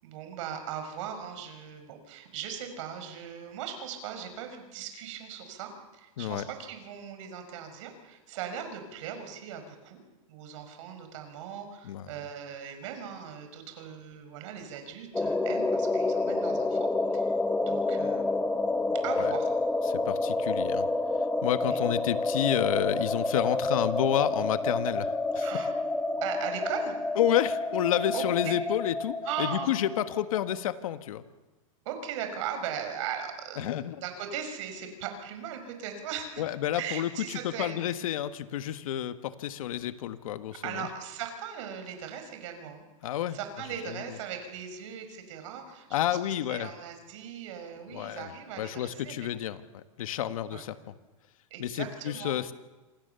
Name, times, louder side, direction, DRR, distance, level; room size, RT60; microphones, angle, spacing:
voice 1, 0.0-10.0 10.3-17.3 17.6-18.3 19.0-19.5 21.6-21.8 25.4-25.7 26.2-27.0 28.1-28.6 29.2-29.8 31.9-36.5 36.7-37.9 40.6-42.9 43.3-49.3 50.5-50.6 51.5-52.4, right 8 dB, 60° right, 7 dB, 5.6 m, -39 dB
voice 2, 6.2-6.5 11.8-12.1 19.2-19.3 19.9-20.9 21.4-25.5 27.2-31.2 33.6-34.0 36.4-40.9 43.0-43.4 43.8-44.0 45.9-46.7 47.9-48.3 48.6-50.9 51.6-52.5, left 11 dB, 75° left, 10 dB, 1.5 m, -30 dB
sound 1, 15.1-30.5, left 2 dB, 5° left, 0.9 m, -29 dB
27.5 x 25.0 x 6.9 m, 1.2 s
supercardioid pair, 140°, 18 cm